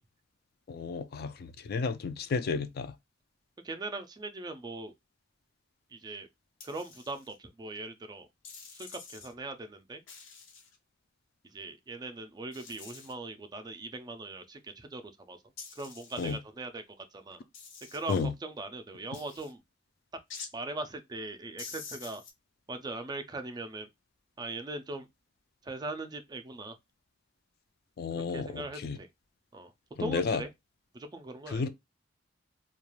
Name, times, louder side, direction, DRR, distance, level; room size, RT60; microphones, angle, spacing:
voice 1, 0.7-2.9 16.2-16.4 18.1-18.3 28.0-29.0 30.0-30.4 31.5-31.7, left 4 dB, 55° left, 0.3 m, -32 dB
voice 2, 3.6-4.9 5.9-6.3 6.6-8.3 8.7-10.0 11.5-15.4 15.7-17.4 17.9-19.6 20.5-22.2 22.7-23.9 24.4-25.1 25.6-26.8 28.1-29.1 29.5-29.7 30.0-30.5 30.9-31.7, right 2 dB, 20° right, 0.3 m, -40 dB
sound 1, 6.6-7.4 8.4-9.3 10.1-10.8 12.5-13.1 15.6-16.4 17.5-18.2 19.1-19.5 20.3-20.5 21.6-22.3, left 5 dB, 90° left, 0.7 m, -47 dB
2.3 x 2.3 x 3.0 m
head